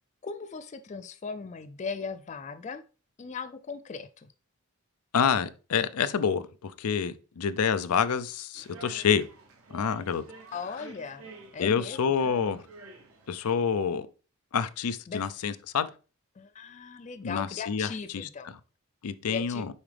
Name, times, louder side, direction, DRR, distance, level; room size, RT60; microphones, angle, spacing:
voice 1, 0.2-2.8 3.2-4.3 10.5-12.0 15.1-15.3 16.4-18.5 19.3-19.7, left 5 dB, 30° left, 0.3 m, -38 dB
voice 2, 5.1-9.3 9.7-10.2 11.6-12.6 13.3-14.1 14.5-15.9 17.2-18.3 19.0-19.7, left 7 dB, 85° left, 0.5 m, -27 dB
sound 1, 8.5-13.7, right 2 dB, 75° right, 1.2 m, -49 dB
7.1 x 4.9 x 3.3 m
head